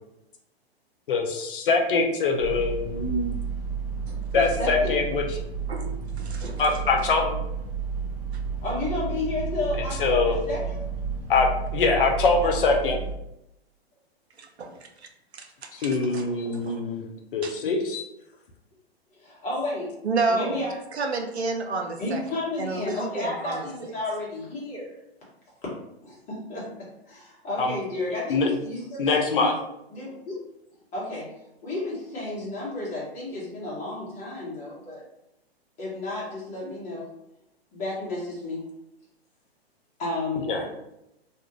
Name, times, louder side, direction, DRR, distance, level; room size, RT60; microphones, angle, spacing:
voice 1, 1.1-3.3 4.3-5.4 6.6-7.3 10.0-10.4 11.3-11.5 11.7-13.0 15.7-18.0 27.6-27.8 28.3-28.5 29.0-29.5 40.5-40.7, left 4 dB, 55° left, 1 dB, 0.6 m, -23 dB
sound 1, 2.4-13.1, right 6 dB, 45° right, 0.8 m, -32 dB
voice 2, 4.3-5.0 8.6-10.8 19.2-19.9 20.3-20.7 22.0-24.9 26.0-29.5 29.9-30.4 30.9-31.3 31.6-35.0 35.8-37.1 37.7-38.6 40.0-40.8, left 2 dB, 25° left, -6 dB, 1.2 m, -32 dB
voice 3, 6.2-6.9 14.4-16.8 17.4-17.5 20.0-20.6 20.9-22.2 22.6-23.7, right 3 dB, 85° right, 3 dB, 0.6 m, -31 dB
2.5 x 2.4 x 2.9 m, 0.83 s
figure-of-eight pair, 115°, 32 cm